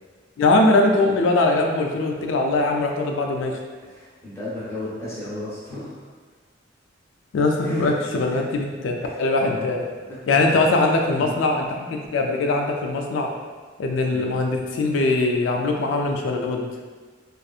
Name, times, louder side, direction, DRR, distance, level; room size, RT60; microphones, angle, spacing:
voice 1, 0.4-3.5 7.3-9.8 10.3-13.3 13.8-16.7, left 2 dB, 75° left, 2 dB, 0.3 m, -21 dB
voice 2, 3.8-6.1 7.6-8.0 8.2-8.4 9.0-10.7 11.1-11.3 14.1-14.4, left 1 dB, 15° left, -9 dB, 0.7 m, -35 dB
2.6 x 2.4 x 2.3 m, 1.5 s
head